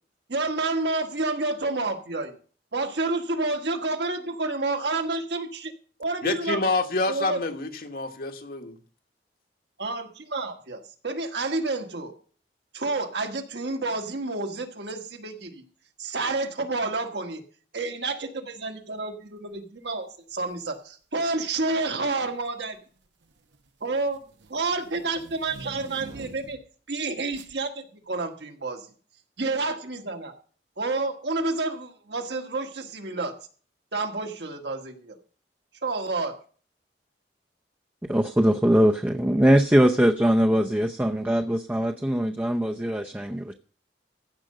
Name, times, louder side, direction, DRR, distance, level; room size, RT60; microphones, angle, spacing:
voice 1, 0.3-2.3 2.7-5.7 6.0-6.7 7.1-7.4 9.8-12.1 12.7-15.6 16.0-17.4 17.7-22.8 23.8-24.2 24.5-26.6 26.9-28.9 29.4-30.3 30.8-33.3 33.9-35.1 35.8-36.3, right 3 dB, 70° right, 1.6 m, -29 dB
voice 2, 6.2-8.8, left 3 dB, 60° left, 1.5 m, -27 dB
sound 1, 20.4-20.7 21.7-22.1 22.4-26.7 27.3-27.6, right 2 dB, 90° right, 1.3 m, -46 dB
voice 3, 38.1-43.5, equal, 10° right, 0.6 m, -21 dB
15.5 x 5.2 x 6.6 m
head